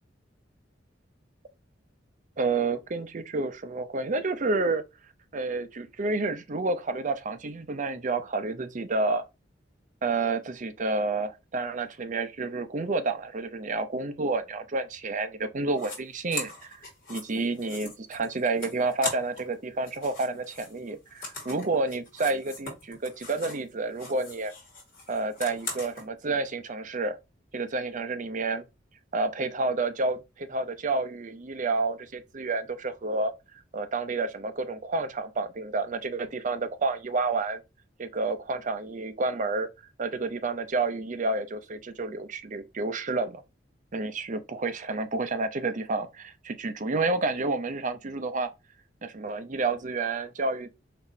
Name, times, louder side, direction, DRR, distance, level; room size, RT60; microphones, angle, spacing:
voice 1, 2.4-4.8 5.3-9.2 10.0-16.8 17.1-24.5 25.1-27.2 27.5-28.6 29.1-33.3 33.7-37.6 38.0-39.7 40.0-43.4 43.9-48.5 49.0-50.7, right 3 dB, 45° right, 0.6 m, -29 dB
sound 1, 15.7-16.0 16.3-19.5 19.8-23.7 23.9-26.0, left 3 dB, 50° left, 2.0 m, -40 dB
4.2 x 3.1 x 2.7 m
head